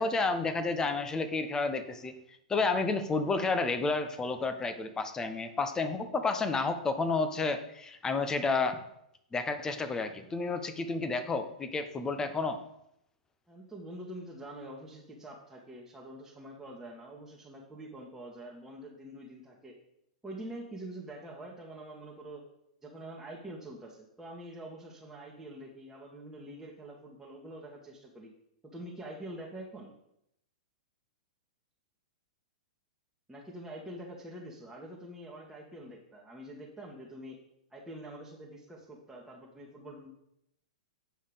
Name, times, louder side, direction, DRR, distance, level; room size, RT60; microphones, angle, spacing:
voice 1, 0.0-2.1 2.5-8.8 9.3-12.6, left 3 dB, 15° left, 8 dB, 1.0 m, -31 dB
voice 2, 13.5-19.8 20.2-22.4 22.8-28.3 28.7-29.9 33.3-37.4 37.7-40.1, right 1 dB, 5° right, -4 dB, 1.7 m, -45 dB
9.0 x 5.4 x 5.1 m, 0.79 s
hypercardioid pair, 105°, 4 cm